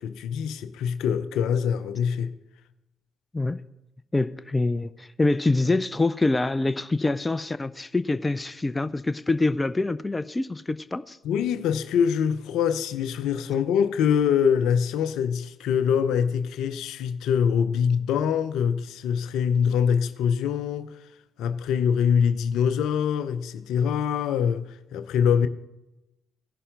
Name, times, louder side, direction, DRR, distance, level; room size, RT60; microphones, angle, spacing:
voice 1, 0.0-2.3 11.2-20.9 21.4-25.5, left 7 dB, 70° left, 0.7 m, -24 dB
voice 2, 4.1-11.2, left 2 dB, 20° left, 0.6 m, -25 dB
17.0 x 11.0 x 3.8 m
hypercardioid pair, 45°, 0 cm